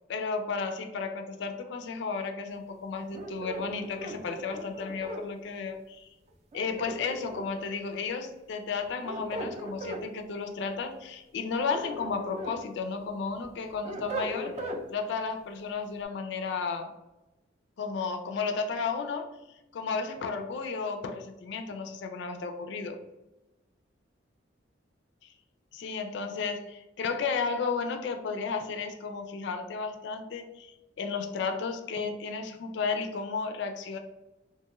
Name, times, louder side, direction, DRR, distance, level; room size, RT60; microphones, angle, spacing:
voice 1, 0.1-6.1 6.5-14.6 14.9-16.9 17.8-19.3 19.7-23.0 25.2-25.3 25.7-34.0, left 5 dB, 65° left, 5 dB, 0.3 m, -33 dB
sound 1, 3.1-5.2 6.5-7.6 8.8-10.0 11.5-12.6 13.0-14.8, right 1 dB, 35° right, 0.4 m, -38 dB
2.8 x 2.3 x 2.9 m, 1.0 s
head